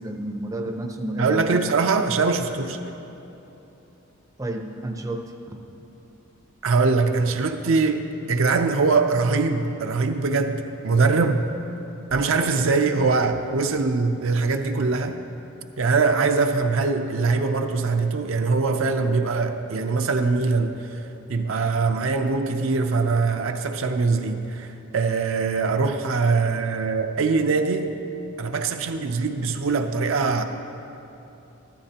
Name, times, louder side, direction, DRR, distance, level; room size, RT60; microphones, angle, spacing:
voice 1, 0.0-1.7 4.4-5.7, right 1 dB, 15° right, 3 dB, 0.6 m, -31 dB
voice 2, 1.2-2.8 6.6-11.4 12.1-15.2 15.8-21.0 21.3-24.7 24.9-27.9 28.4-30.4, right 4 dB, 65° right, 5 dB, 0.5 m, -22 dB
14.0 x 13.0 x 2.9 m, 3.0 s
head